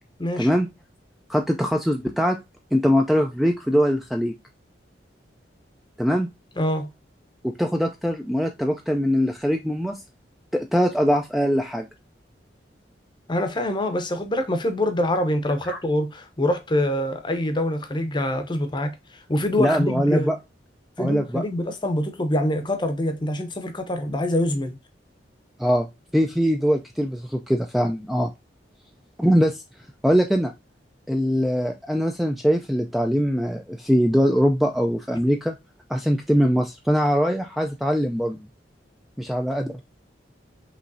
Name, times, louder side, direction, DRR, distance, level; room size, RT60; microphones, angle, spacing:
voice 1, 0.4-0.7 1.3-2.4 2.7-4.3 6.0-6.3 7.4-10.0 10.5-11.9 15.7-15.8 19.6-20.4 21.0-21.4 25.6-28.3 29.2-29.6 30.0-30.5 31.1-35.6 35.9-38.4 39.2-39.8, equal, ahead, 0.3 m, -22 dB
voice 2, 6.6-6.9 13.3-20.3 21.0-24.8, left 1 dB, 25° left, 0.7 m, -25 dB
5.4 x 3.1 x 2.6 m
head